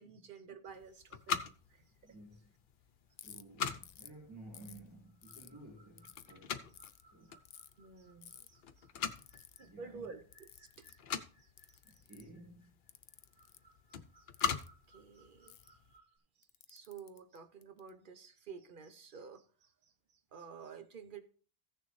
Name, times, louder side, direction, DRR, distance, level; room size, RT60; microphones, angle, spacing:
voice 1, 0.0-2.2 7.8-12.0 13.9-14.6 14.9-15.8 16.4-21.2, right 6 dB, 55° right, 1.0 m, -53 dB
sound 1, 0.7-15.9, left 7 dB, 60° left, 0.8 m, -44 dB
voice 2, 2.0-2.5 3.2-6.8 7.1-7.4 9.6-10.1 11.8-12.6, right 2 dB, 10° right, 2.1 m, -55 dB
Ratchet pawl, 3.2-3.4 3.8-4.1 4.5-5.5 6.0-6.3 6.7-7.0 7.4-7.7 8.2-8.5 9.1-9.6 10.3-11.0 11.6-12.3 12.9-13.6 14.3-14.7 15.5-15.7 16.4-17.9, left 10 dB, 90° left, 0.9 m, -55 dB
sound 2, 5.0-16.2, right 2 dB, 40° right, 3.4 m, -68 dB
15.5 x 6.7 x 3.2 m
omnidirectional pair, 1.1 m